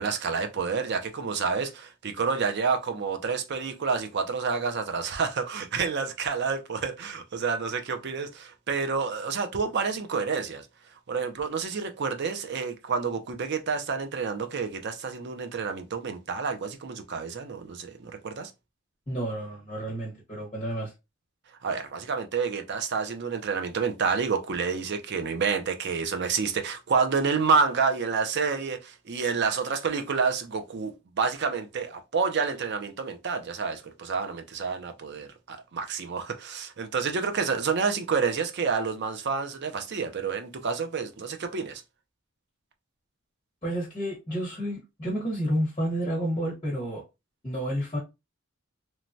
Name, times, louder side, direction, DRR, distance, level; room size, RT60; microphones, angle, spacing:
voice 1, 0.0-10.7 11.1-18.5 21.6-41.8, right 5 dB, 50° right, 0.5 m, -29 dB
voice 2, 19.1-20.9 43.6-47.0 47.4-48.0, equal, 25° left, 0.9 m, -30 dB
3.1 x 2.2 x 2.6 m
head